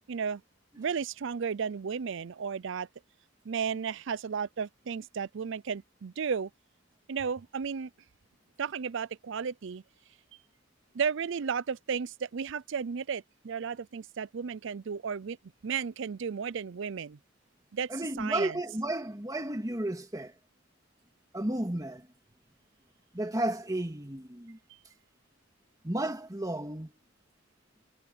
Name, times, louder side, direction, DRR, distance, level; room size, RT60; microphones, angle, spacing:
voice 1, 0.1-0.4 0.8-2.9 3.4-6.5 7.1-7.9 8.6-9.8 10.9-15.4 15.6-17.2 17.7-17.9 18.2-18.6, right 6 dB, 65° right, 0.5 m, -33 dB
voice 2, 17.9-20.3 21.3-22.1 23.1-24.6 25.8-26.9, right 1 dB, 20° right, 2.0 m, -33 dB
head